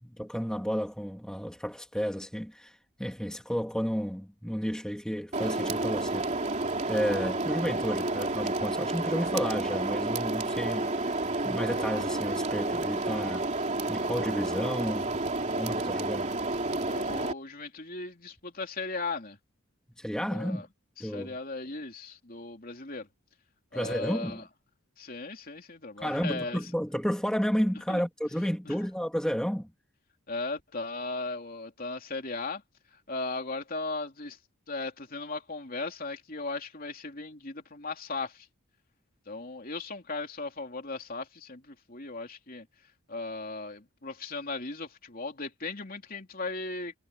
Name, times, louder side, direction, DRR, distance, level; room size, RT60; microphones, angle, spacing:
voice 1, 0.0-6.3 6.9-11.1 11.4-13.5 13.9-15.2 15.6-16.3 20.0-20.6 21.0-21.4 23.7-24.4 26.0-29.7, equal, 5° left, 2.6 m, -32 dB
sound 1, 5.3-17.3, right 2 dB, 35° right, 3.2 m, -30 dB
voice 2, 16.9-19.4 20.3-20.7 21.0-23.1 23.7-24.4 25.0-26.6 27.9-28.0 28.7-28.8 30.3-32.6 33.1-34.4 34.7-38.5 39.3-42.6 43.1-46.9, left 3 dB, 40° left, 3.3 m, -37 dB
head